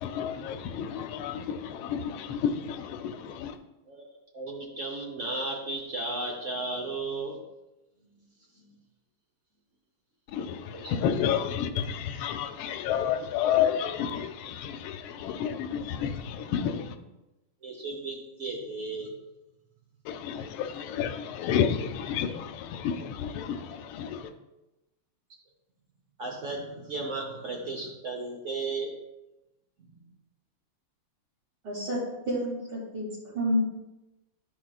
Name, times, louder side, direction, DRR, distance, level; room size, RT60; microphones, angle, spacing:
voice 1, 0.0-3.6 10.3-17.0 20.0-24.3, left 8 dB, 85° left, 1.4 m, -30 dB
voice 2, 3.9-7.4 8.5-8.7 10.7-11.1 17.6-19.1 26.2-28.9 29.8-30.0, right 3 dB, 55° right, 0.8 m, -35 dB
voice 3, 31.6-33.1 33.4-33.6, equal, 75° right, 3.4 m, -29 dB
11.0 x 4.9 x 2.3 m
omnidirectional pair, 2.3 m